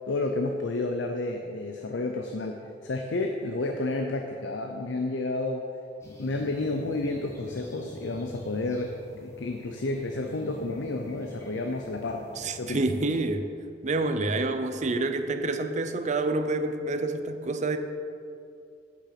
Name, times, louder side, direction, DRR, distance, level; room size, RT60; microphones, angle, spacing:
voice 1, 0.1-5.6 6.1-12.2 12.6-12.8, left 2 dB, 90° left, 3 dB, 0.6 m, -31 dB
sound 1, 6.0-13.2, left 1 dB, 15° left, 1.6 m, -45 dB
voice 2, 12.4-13.5 13.8-17.8, right 2 dB, 40° right, 8 dB, 0.6 m, -28 dB
10.0 x 6.1 x 5.9 m, 2.5 s
head